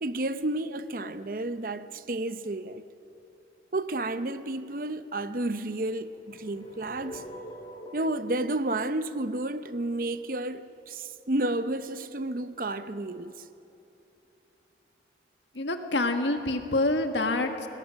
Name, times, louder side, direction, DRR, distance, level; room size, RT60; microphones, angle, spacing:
voice 1, 0.0-2.8 3.7-7.2 7.9-13.4, right 2 dB, 50° right, 0.7 m, -31 dB
sound 1, 6.1-10.2, equal, 35° left, 2.0 m, -45 dB
voice 2, 15.5-17.7, left 2 dB, 85° left, 1.7 m, -27 dB
25.5 x 20.0 x 6.4 m
head